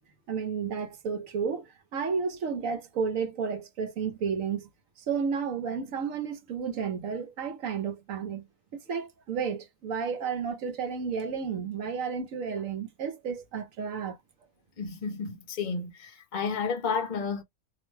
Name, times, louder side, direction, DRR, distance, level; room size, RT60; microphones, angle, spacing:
voice 1, 0.3-4.7 5.1-8.4 8.9-14.2, right 6 dB, 75° right, 1.1 m, -32 dB
voice 2, 14.8-17.4, left 5 dB, 50° left, 0.6 m, -31 dB
2.7 x 2.1 x 3.1 m
omnidirectional pair, 1.4 m